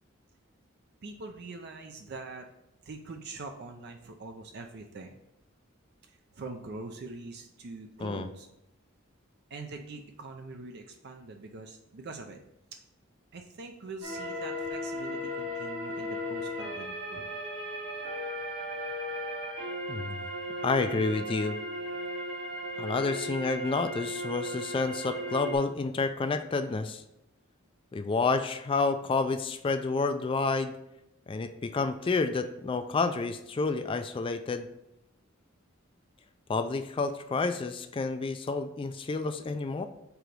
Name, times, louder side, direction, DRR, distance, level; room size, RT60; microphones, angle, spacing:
voice 1, 1.0-2.5 2.8-5.2 6.0-8.5 9.5-12.4 12.7-12.8 13.3-17.3, right 3 dB, 55° right, 4 dB, 0.5 m, -43 dB
sound 1, 14.0-25.6, equal, 70° right, 1.6 m, -36 dB
voice 2, 19.9-20.2 20.6-21.6 22.8-27.0 27.9-30.7 31.3-34.7 36.5-39.8, left 4 dB, 25° left, 9 dB, 0.3 m, -29 dB
4.8 x 3.9 x 5.1 m, 0.86 s
head